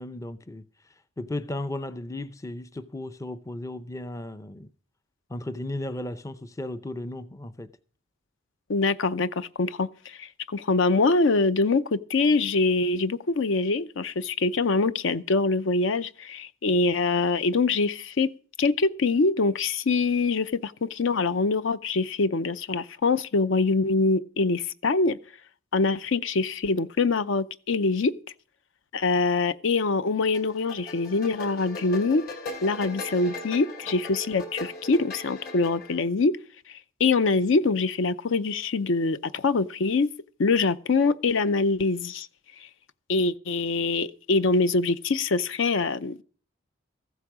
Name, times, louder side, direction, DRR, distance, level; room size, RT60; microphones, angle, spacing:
voice 1, 0.0-4.7 5.3-7.7, left 1 dB, 15° left, 0.5 m, -35 dB
voice 2, 8.7-18.3 18.6-25.2 25.7-28.1 28.9-32.3 32.6-36.4 36.7-40.1 40.4-42.3 43.1-46.2, left 3 dB, 65° left, 0.5 m, -24 dB
sound 1, 30.3-36.0, left 2 dB, 45° left, 2.8 m, -39 dB
14.5 x 8.2 x 6.1 m
head